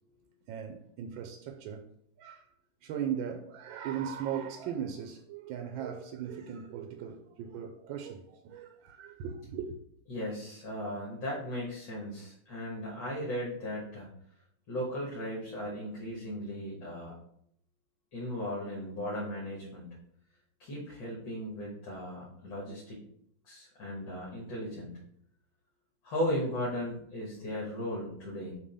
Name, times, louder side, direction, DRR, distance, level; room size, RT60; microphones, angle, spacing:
voice 1, 0.5-1.9 2.2-2.5 2.8-9.8, right 8 dB, 80° right, 1.4 m, -38 dB
voice 2, 10.1-14.1 14.7-17.1 18.1-19.9 20.6-23.0 23.4-24.9 26.0-28.5, equal, 65° left, 2.1 m, -36 dB
6.7 x 2.8 x 5.5 m
omnidirectional pair, 2.2 m